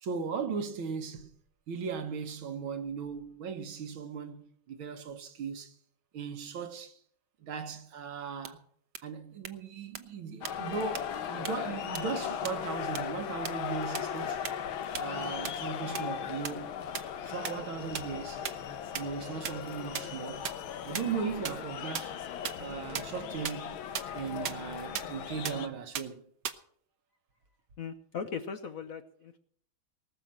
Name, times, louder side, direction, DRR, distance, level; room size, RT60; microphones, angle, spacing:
voice 1, 0.0-1.3 1.7-5.8 6.1-7.0 7.4-8.6 9.0-14.4 15.0-16.7 17.2-18.4 18.9-20.5 20.8-22.2 22.6-23.8 24.1-26.3, right 6 dB, 80° right, 2.1 m, -38 dB
sound 1, 8.4-8.5 8.9-9.0 9.4-9.5 9.9-10.0 10.4-10.5 10.9-11.0 11.4-11.5 11.9-12.0 12.4-12.5 12.9-13.0 13.4-13.5 13.9-14.0 14.4-14.5 14.9-15.0 15.4-15.5 15.9-16.0 16.4-16.5 16.9-17.0 17.4-17.5 17.9-18.0 18.4-18.5 18.9-19.0 19.4-19.5 19.9-20.0 20.4-20.5 20.9-21.0 21.4-21.5 21.9-22.0 22.4-22.5 22.9-23.0 23.4-23.5 23.9-24.0 24.4-24.5 24.9-25.0 25.4-25.5 25.9-26.0 26.4-26.5, right 8 dB, 60° right, 1.4 m, -33 dB
sound 2, 10.4-25.7, left 8 dB, 80° left, 1.8 m, -38 dB
voice 2, 27.8-29.4, left 6 dB, 55° left, 1.0 m, -39 dB
19.0 x 6.9 x 7.4 m
omnidirectional pair, 2.2 m